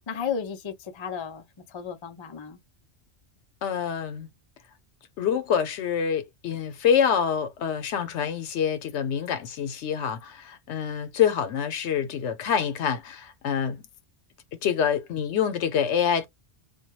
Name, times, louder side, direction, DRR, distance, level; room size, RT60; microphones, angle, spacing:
voice 1, 0.1-2.6, left 7 dB, 45° left, 0.3 m, -34 dB
voice 2, 3.6-4.3 5.2-13.8 14.6-16.3, left 8 dB, 80° left, 0.9 m, -26 dB
2.2 x 2.2 x 2.9 m
omnidirectional pair, 1.2 m